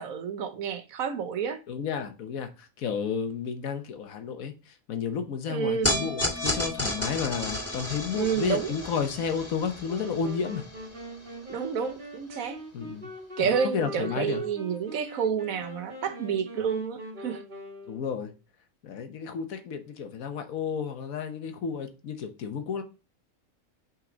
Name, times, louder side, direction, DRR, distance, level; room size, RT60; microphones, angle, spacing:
voice 1, 0.0-1.6 5.5-6.1 8.2-8.7 11.5-12.6 13.4-17.4, right 7 dB, 80° right, 1.3 m, -29 dB
voice 2, 1.7-10.6 12.7-13.1 13.4-14.4 17.9-18.3 18.8-22.8, left 6 dB, 85° left, 1.4 m, -32 dB
sound 1, 5.8-12.2, left 1 dB, 10° left, 2.4 m, -33 dB
sound 2, 9.9-18.3, equal, 35° right, 2.2 m, -42 dB
5.9 x 4.6 x 3.9 m
omnidirectional pair, 1.4 m